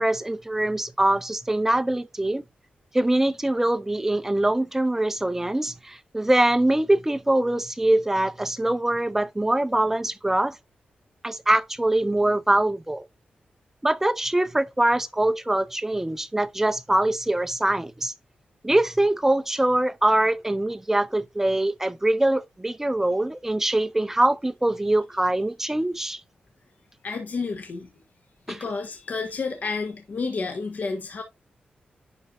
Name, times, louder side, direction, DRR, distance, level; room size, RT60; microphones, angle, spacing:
voice 1, 0.0-2.4 2.9-10.6 11.2-13.0 13.8-18.1 18.6-26.2 28.5-28.7, right 1 dB, 10° right, 0.6 m, -23 dB
voice 2, 27.0-27.9 28.5-31.2, left 4 dB, 60° left, 1.4 m, -30 dB
11.0 x 4.5 x 2.6 m
wide cardioid pair, 105°, 3 cm